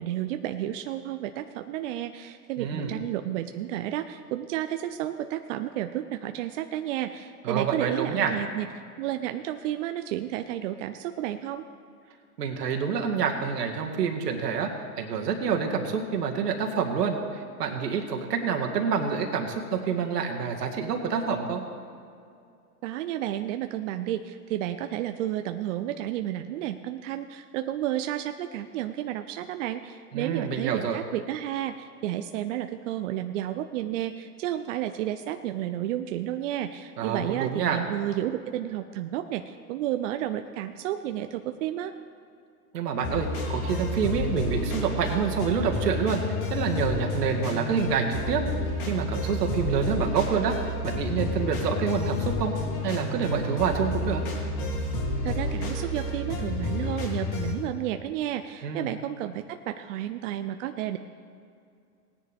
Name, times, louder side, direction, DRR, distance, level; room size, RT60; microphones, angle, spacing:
voice 1, 0.0-8.7 9.0-11.6 22.8-41.9 55.2-61.0, right 12 dB, 50° right, 8 dB, 0.6 m, -31 dB
voice 2, 2.6-3.0 7.4-8.3 12.4-14.7 15.0-21.6 30.1-31.0 37.0-37.8 42.7-46.2 46.5-48.4 48.9-50.6 50.8-52.5 52.8-54.2 58.6-58.9, right 6 dB, 80° right, 2 dB, 2.0 m, -27 dB
sound 1, 43.0-57.5, left 1 dB, 60° left, 3.4 m, -30 dB
18.5 x 10.0 x 3.5 m, 2.4 s
hypercardioid pair, 130°, 47 cm